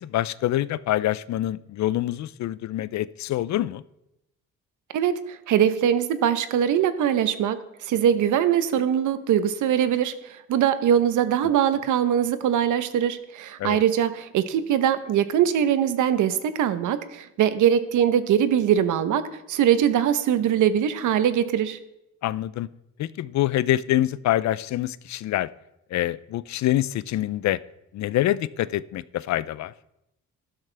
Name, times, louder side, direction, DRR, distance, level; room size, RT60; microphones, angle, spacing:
voice 1, 0.0-3.8 13.6-13.8 22.2-22.7 23.0-25.5 25.9-27.6 27.9-29.7, left 14 dB, 65° left, 19 dB, 0.5 m, -25 dB
voice 2, 4.9-21.8, right 9 dB, 80° right, 12 dB, 0.9 m, -22 dB
12.5 x 12.0 x 3.4 m, 0.87 s
cardioid pair, 90°, 30 cm